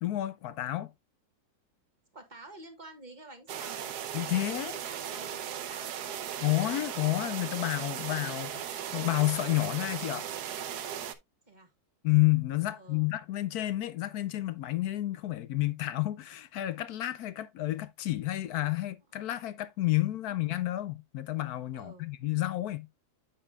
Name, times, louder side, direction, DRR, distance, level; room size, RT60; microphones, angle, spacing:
voice 1, 0.0-0.9 4.1-4.8 6.4-10.3 12.0-22.9, left 17 dB, 75° left, 0.9 m, -30 dB
voice 2, 2.1-3.9 4.5-6.2 11.5-11.7 12.7-13.1 21.7-22.1, right 2 dB, 25° right, 1.4 m, -50 dB
sound 1, 3.5-11.2, right 9 dB, 65° right, 1.2 m, -37 dB
8.8 x 6.9 x 2.3 m
omnidirectional pair, 2.1 m